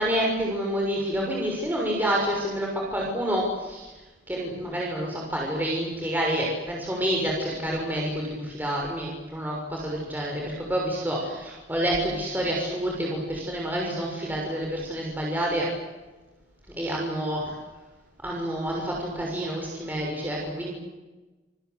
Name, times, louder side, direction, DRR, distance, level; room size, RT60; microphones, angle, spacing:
voice 1, 0.0-3.9 4.3-15.7 16.8-17.5 18.2-20.7, equal, 10° right, -2 dB, 6.5 m, -28 dB
28.0 x 22.0 x 8.3 m, 1.1 s
head